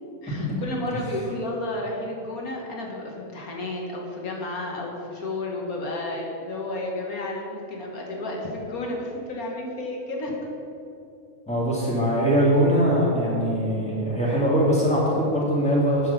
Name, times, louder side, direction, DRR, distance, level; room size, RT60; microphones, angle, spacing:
voice 1, 0.2-10.5, left 2 dB, 85° left, -1 dB, 1.8 m, -32 dB
voice 2, 11.5-16.1, equal, 5° left, -6 dB, 2.5 m, -22 dB
9.1 x 6.2 x 6.9 m, 2.8 s
omnidirectional pair, 1.5 m